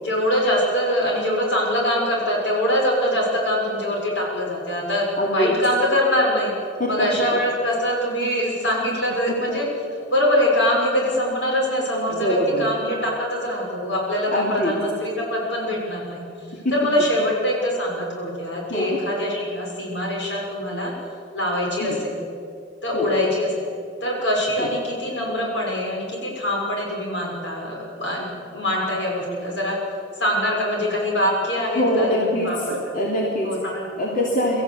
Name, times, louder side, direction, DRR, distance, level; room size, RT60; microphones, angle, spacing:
voice 1, 0.0-5.1 5.3-6.5 6.9-9.7 10.1-16.2 16.7-20.9 21.3-22.2 22.8-23.7 24.0-28.3 28.5-29.8 30.2-32.6 32.9-33.0 33.4-33.9, left 1 dB, 80° left, -2 dB, 6.3 m, -23 dB
voice 2, 5.2-5.5 6.8-7.1 7.3-7.4 9.5-9.6 12.1-12.7 14.3-14.7 16.6-16.7 18.7-19.0 21.8-22.0 22.9-23.1 24.6-24.7 31.7-33.5 34.0-34.6, equal, 50° left, -3 dB, 3.1 m, -23 dB
24.5 x 14.5 x 8.2 m, 2.5 s
head